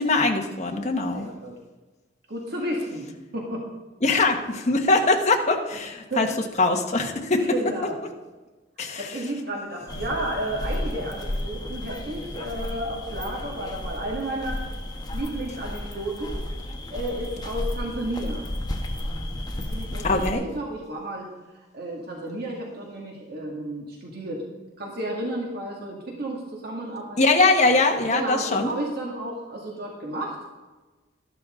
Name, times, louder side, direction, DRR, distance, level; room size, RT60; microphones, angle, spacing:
voice 1, 0.0-1.3 4.0-6.3 6.6-7.4 8.8-9.1 20.0-20.4 27.2-28.7, left 3 dB, 40° left, 2 dB, 1.5 m, -22 dB
voice 2, 0.8-1.5 2.3-3.6 6.1-6.3 7.4-8.0 9.0-14.6 15.1-16.4 16.9-18.4 19.5-21.3 21.7-24.4 24.8-27.2 28.1-30.4, right 1 dB, 60° right, -2 dB, 2.2 m, -32 dB
sound 1, 9.9-20.3, left 1 dB, 20° left, 1.2 m, -33 dB
13.0 x 11.5 x 3.8 m, 1.2 s
head